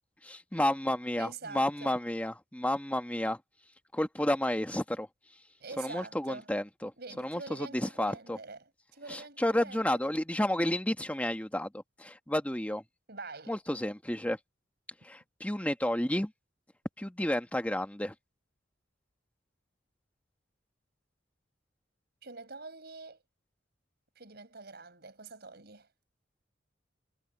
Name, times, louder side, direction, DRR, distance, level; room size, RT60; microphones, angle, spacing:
voice 1, 0.2-3.4 3.9-5.1 5.8-6.9 7.2-8.4 9.1-12.8 13.5-14.4 15.0-16.3 17.0-18.1, left 1 dB, 10° left, 1.4 m, -31 dB
voice 2, 1.2-2.0 5.6-6.5 7.0-8.6 8.9-10.1 13.1-13.6 22.2-23.2 24.2-25.9, right 4 dB, 55° right, 6.2 m, -45 dB
head